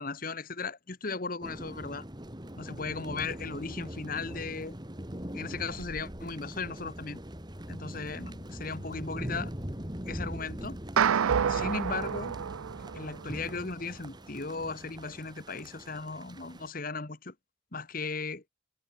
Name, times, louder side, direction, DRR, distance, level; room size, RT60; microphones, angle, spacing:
voice 1, 0.0-2.0 2.6-4.8 5.3-7.2 7.7-9.5 10.1-10.8 11.5-12.3 12.9-17.3 17.7-18.4, left 4 dB, 45° left, 1.3 m, -37 dB
sound 1, 1.4-16.7, equal, 20° right, 2.8 m, -42 dB
sound 2, 11.0-13.4, right 7 dB, 90° right, 0.5 m, -28 dB
head